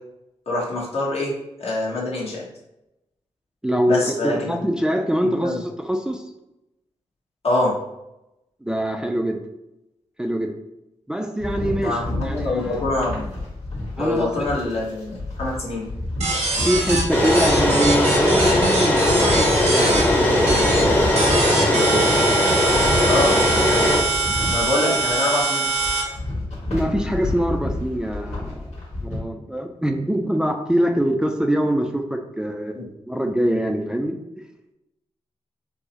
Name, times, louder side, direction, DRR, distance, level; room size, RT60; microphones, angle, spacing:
voice 1, 0.5-1.3 1.6-2.4 3.9-4.6 5.4-5.6 7.4-7.8 11.8-13.3 14.0-15.8 23.1-23.3 24.5-25.7, left 2 dB, 65° left, -5 dB, 1.3 m, -24 dB
voice 2, 3.6-6.2 8.6-9.4 10.2-10.5 11.1-12.8 14.0-14.8 16.6-22.0 24.8-25.0 26.7-28.7 29.0-34.2, equal, 5° right, 4 dB, 0.3 m, -24 dB
sound 1, 11.4-21.5 21.9-29.2, left 2 dB, 80° left, 1.4 m, -30 dB
sound 2, 16.2-20.0 20.5-20.8 21.2-26.0, right 3 dB, 85° right, 0.7 m, -24 dB
sound 3, 17.1-24.0, left 1 dB, 15° left, 0.8 m, -19 dB
4.6 x 2.0 x 2.8 m, 0.89 s
wide cardioid pair, 90°, 11 cm